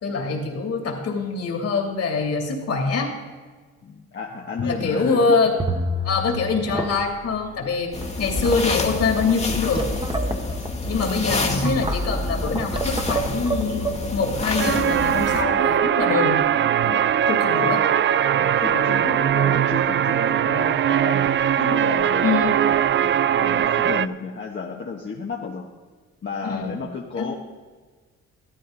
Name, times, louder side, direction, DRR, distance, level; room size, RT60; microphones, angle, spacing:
voice 1, 0.0-3.1 4.6-5.5 6.0-9.9 10.9-16.4 17.3-17.8 22.2-22.6 26.4-26.7 27.2-27.3, left 4 dB, 55° left, 1 dB, 2.7 m, -24 dB
voice 2, 3.8-5.4 6.0-6.1 10.9-11.6 16.9-17.8 18.4-25.7 26.2-27.3, left 5 dB, 40° left, -1 dB, 1.2 m, -33 dB
sound 1, 4.3-4.7 5.0-5.1 5.6-6.4 6.7-7.2 8.0-8.1 8.4-8.7 9.3-14.8, right 2 dB, 15° right, 1.2 m, -28 dB
sound 2, 7.9-15.4, left 3 dB, 20° left, 1.6 m, -28 dB
sound 3, 14.6-24.1, right 9 dB, 40° right, 0.4 m, -20 dB
14.5 x 13.0 x 3.8 m, 1.4 s
cardioid pair, 90°, 30 cm